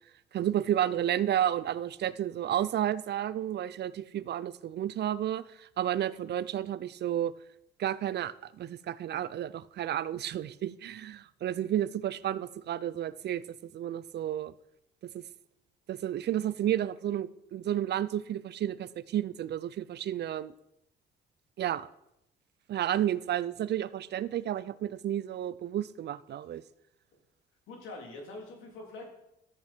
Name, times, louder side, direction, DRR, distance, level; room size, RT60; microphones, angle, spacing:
voice 1, 0.3-7.3 7.8-14.5 15.1-15.2 15.9-20.5 21.6-21.9 22.7-26.6, right 11 dB, 55° right, 18 dB, 0.6 m, -31 dB
voice 2, 27.7-29.1, left 2 dB, 75° left, 1 dB, 3.4 m, -44 dB
13.5 x 8.3 x 4.5 m, 0.82 s
supercardioid pair, 65°, 20 cm